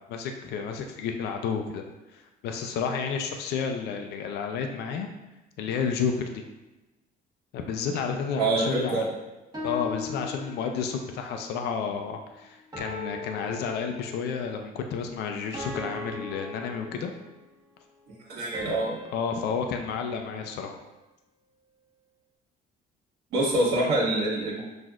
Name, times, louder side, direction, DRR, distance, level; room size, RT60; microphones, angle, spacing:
voice 1, 0.1-1.8 2.1-5.1 5.6-6.4 7.5-9.1 9.6-17.1 19.1-20.8, left 6 dB, 75° left, 4 dB, 0.5 m, -31 dB
voice 2, 8.4-9.0 18.1-19.0 23.3-24.6, right 2 dB, 70° right, -4 dB, 1.4 m, -26 dB
sound 1, 9.5-11.1 12.7-14.4 15.5-17.5 18.5-20.9, left 3 dB, 20° right, 1.1 m, -39 dB
6.0 x 2.6 x 2.4 m, 1.0 s
cardioid pair, 110°, 17 cm